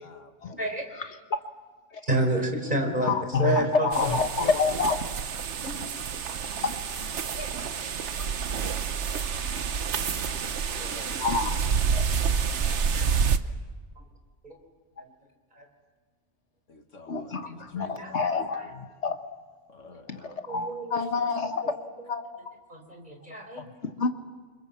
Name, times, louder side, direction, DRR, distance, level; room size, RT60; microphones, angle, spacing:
voice 1, 0.0-0.6 2.6-2.8 3.4-3.6 4.0-4.6 10.8-11.2 16.7-17.5 17.7-18.0 19.7-20.3, left 3 dB, 85° left, 5 dB, 2.2 m, -43 dB
voice 2, 0.9-1.4 1.9-2.0 3.0-5.1 6.6-6.8 11.2-11.6 11.9-12.1 17.1-19.2 20.1-21.8 22.1-22.6 23.6-24.1, left 4 dB, 65° left, 7 dB, 1.6 m, -28 dB
voice 3, 2.1-3.1 3.4-3.9 5.6-5.8 7.4-7.9 9.8-10.4 10.7-11.1 12.7-13.1 14.4-14.6 15.5-15.6 18.0-18.3 18.5-18.6 20.3-21.0 21.6-21.7 22.7-23.6, right 1 dB, 40° right, 3 dB, 4.6 m, -30 dB
sound 1, 3.9-13.4, right 6 dB, 70° right, 1.2 m, -28 dB
29.0 x 25.5 x 7.3 m, 1.4 s
omnidirectional pair, 1.3 m